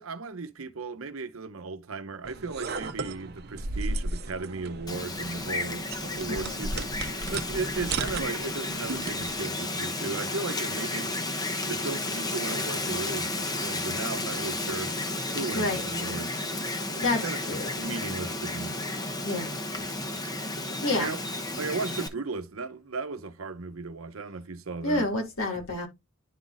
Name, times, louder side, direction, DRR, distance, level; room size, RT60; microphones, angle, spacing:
voice 1, 0.0-11.2 11.7-14.9 15.3-16.4 17.2-17.4 17.8-18.8 20.9-21.2 21.6-25.1, right 3 dB, 85° right, 0.8 m, -36 dB
sound 1, 2.2-9.4, right 3 dB, 50° right, 0.8 m, -35 dB
Wind, 4.9-22.1, left 2 dB, 20° left, 0.9 m, -32 dB
voice 2, 6.3-6.6 15.5-15.8 17.0-17.7 19.2-19.5 20.8-21.1 24.8-25.9, left 2 dB, 90° left, 2.6 m, -28 dB
11.0 x 4.0 x 2.5 m
head